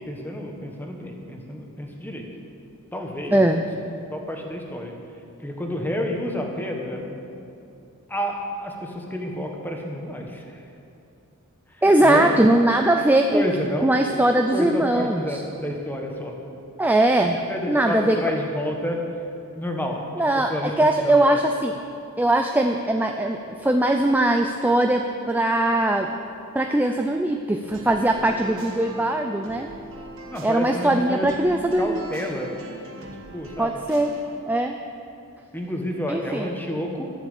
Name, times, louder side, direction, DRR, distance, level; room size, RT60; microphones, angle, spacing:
voice 1, 0.1-2.3 2.9-3.4 4.1-4.9 5.4-7.4 8.1-10.6 11.8-12.3 13.3-13.9 14.3-16.3 17.5-19.0 19.5-20.0 20.3-21.4 30.3-31.3 31.8-32.5 33.3-33.8 35.5-37.1, equal, 10° left, 1 dB, 1.3 m, -30 dB
voice 2, 3.3-3.6 11.8-13.5 13.8-15.4 16.8-17.4 17.7-18.3 20.2-21.8 22.2-26.2 26.5-29.7 30.4-32.1 33.6-34.1 34.5-34.8 36.1-36.5, right 1 dB, 10° right, 4 dB, 0.4 m, -20 dB
sound 1, 27.7-34.2, equal, 60° right, 1.7 m, -42 dB
13.0 x 7.3 x 8.3 m, 2.7 s
head